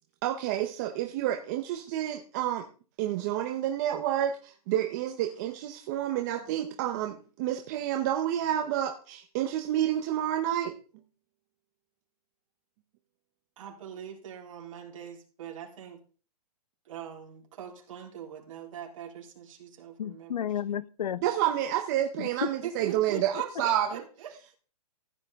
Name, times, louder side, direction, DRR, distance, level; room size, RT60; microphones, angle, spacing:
voice 1, 0.2-2.7 3.0-10.7 21.2-23.9, right 11 dB, 25° right, 4 dB, 0.8 m, -29 dB
voice 2, 13.6-16.0 16.8-20.3 20.7-20.8 22.2-24.5, right 8 dB, 55° right, 0 dB, 3.6 m, -43 dB
voice 3, 20.0-21.2 22.2-22.5, left 9 dB, 85° left, 20 dB, 0.8 m, -32 dB
15.0 x 9.0 x 3.6 m, 0.37 s
hypercardioid pair, 165°, 20 cm